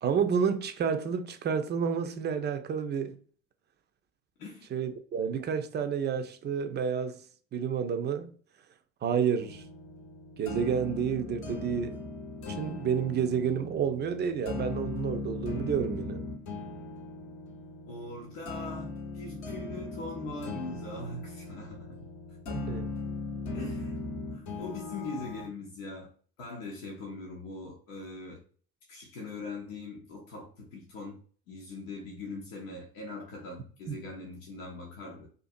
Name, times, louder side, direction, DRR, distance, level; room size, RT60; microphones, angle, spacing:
voice 1, 0.0-3.2 4.7-7.2 7.5-8.3 9.0-9.6 10.4-12.0 12.5-16.2 22.5-22.9 33.9-34.0, right 7 dB, 30° right, 0.4 m, -30 dB
sound 1, 9.4-25.5, left 3 dB, 50° left, 0.8 m, -39 dB
voice 2, 17.9-22.0 23.5-24.0 24.3-26.1 26.4-28.4 28.9-31.2 31.5-35.3, left 2 dB, 85° left, 0.7 m, -41 dB
2.5 x 2.5 x 2.5 m
hypercardioid pair, 65°, 39 cm